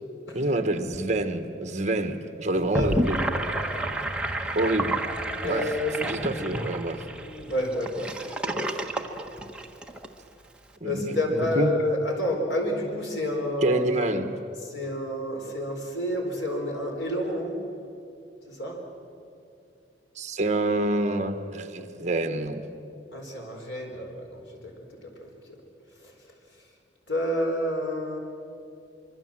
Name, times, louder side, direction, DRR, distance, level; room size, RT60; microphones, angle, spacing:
voice 1, 0.3-3.2 4.5-5.0 5.4-5.6 6.0-7.0 10.8-11.7 13.6-14.3 20.1-22.6, right 2 dB, 40° right, 8 dB, 1.4 m, -27 dB
Gurgling / Sink (filling or washing), 2.6-10.1, right 1 dB, 5° right, 1.3 m, -30 dB
voice 2, 5.4-6.3 7.2-8.3 8.5-8.7 10.8-14.2 14.7-17.6 18.5-18.8 23.1-24.7 25.0-25.1 27.1-28.2, left 1 dB, 85° left, 1 dB, 4.5 m, -29 dB
25.0 x 24.0 x 7.6 m, 2.6 s
head